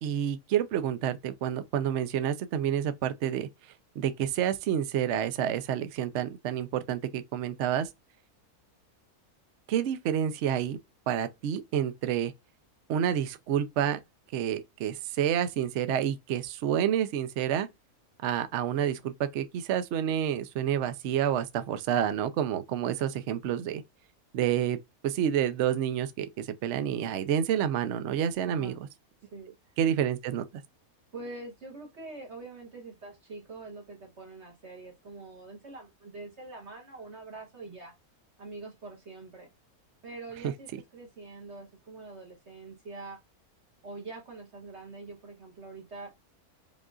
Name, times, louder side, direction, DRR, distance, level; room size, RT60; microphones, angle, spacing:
voice 1, 0.0-3.5 4.0-7.9 9.7-10.8 11.1-12.3 12.9-14.0 14.3-17.7 18.2-23.8 24.3-24.8 25.0-28.8 29.8-30.5, right 9 dB, 65° right, 0.7 m, -29 dB
voice 2, 28.5-28.8 29.3-29.8 31.1-37.9 38.4-39.5 40.0-43.2 43.8-46.1, right 3 dB, 50° right, 1.3 m, -44 dB
5.4 x 2.4 x 2.3 m
omnidirectional pair, 1.6 m